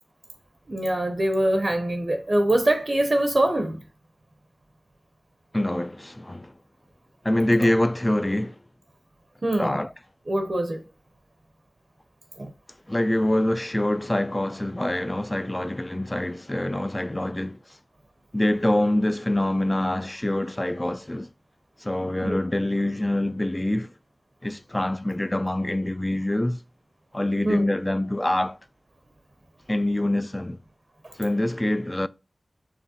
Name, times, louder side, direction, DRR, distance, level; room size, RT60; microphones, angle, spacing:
voice 1, 0.7-3.8 9.4-9.8 10.3-10.8 12.4-12.5 22.2-22.4 27.4-27.6 31.0-31.1, right 1 dB, 50° right, 0.6 m, -23 dB
voice 2, 5.5-6.5 7.2-8.6 9.6-9.9 12.9-17.6 18.3-21.3 21.8-23.9 24.4-26.6 27.1-28.6 29.7-30.6 31.2-32.1, left 1 dB, 20° left, 0.3 m, -25 dB
4.9 x 3.1 x 2.7 m
cardioid pair, 40°, 0 cm